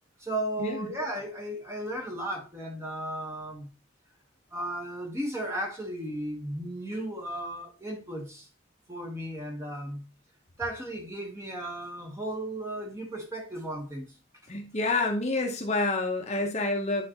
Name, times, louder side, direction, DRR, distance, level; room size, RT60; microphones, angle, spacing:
voice 1, 0.2-3.7 4.5-8.5 8.9-10.1 10.6-14.1, right 1 dB, 15° right, 1.2 m, -35 dB
voice 2, 14.5-17.0, left 2 dB, 35° left, 0.9 m, -28 dB
10.0 x 3.8 x 2.9 m
head